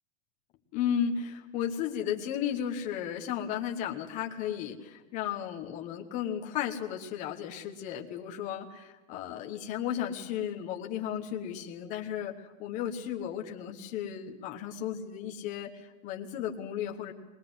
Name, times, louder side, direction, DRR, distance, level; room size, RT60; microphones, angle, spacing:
voice 1, 0.7-17.1, left 9 dB, 20° left, 3 dB, 1.1 m, -34 dB
21.5 x 20.5 x 7.8 m, 1.2 s
supercardioid pair, 170°, 40 cm